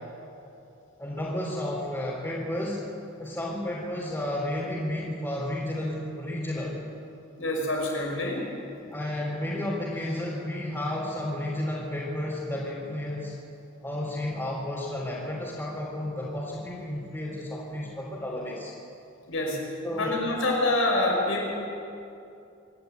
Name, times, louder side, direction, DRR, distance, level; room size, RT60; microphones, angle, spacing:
voice 1, 1.0-2.8 3.2-6.7 8.9-13.3 13.8-18.7 19.8-20.1, left 1 dB, 15° left, -7 dB, 3.7 m, -32 dB
voice 2, 7.4-8.4 19.3-19.6 20.0-21.5, left 1 dB, 80° left, 0 dB, 5.4 m, -26 dB
25.5 x 11.5 x 9.5 m, 2.7 s
head